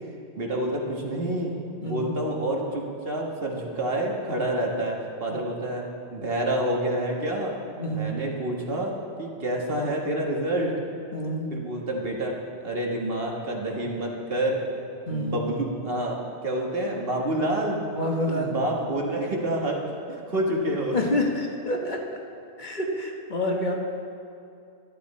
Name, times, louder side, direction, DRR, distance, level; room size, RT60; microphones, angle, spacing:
voice 1, 0.4-1.5 1.8-5.8 6.1-7.6 7.9-8.9 9.2-10.7 11.5-12.3 12.6-14.6 15.1-17.8 18.3-19.8 20.1-21.0, right 1 dB, 55° right, -1 dB, 1.6 m, -28 dB
voice 2, 1.8-2.1 5.3-5.4 7.8-8.1 11.1-11.5 15.1-15.4 17.9-18.6 20.9-22.0 22.6-23.8, left 1 dB, 45° left, 0 dB, 1.2 m, -28 dB
12.5 x 11.5 x 4.2 m, 2.6 s
omnidirectional pair, 1.2 m